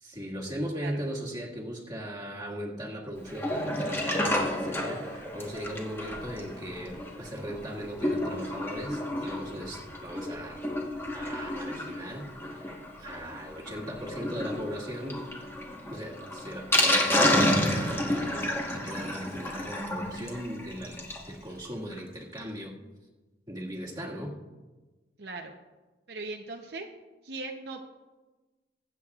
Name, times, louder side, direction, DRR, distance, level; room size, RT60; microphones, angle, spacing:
voice 1, 0.0-10.6 11.1-15.2 15.9-22.8 23.5-24.4, equal, 20° right, -3 dB, 1.8 m, -38 dB
Sink (filling or washing), 3.3-21.3 21.6-21.7 21.9-22.0 22.4-22.5, left 1 dB, 15° left, 1.2 m, -30 dB
voice 2, 25.2-25.5 26.1-26.9 27.2-27.8, right 3 dB, 60° right, 2 dB, 0.8 m, -38 dB
23.5 x 8.4 x 2.4 m, 1.2 s
head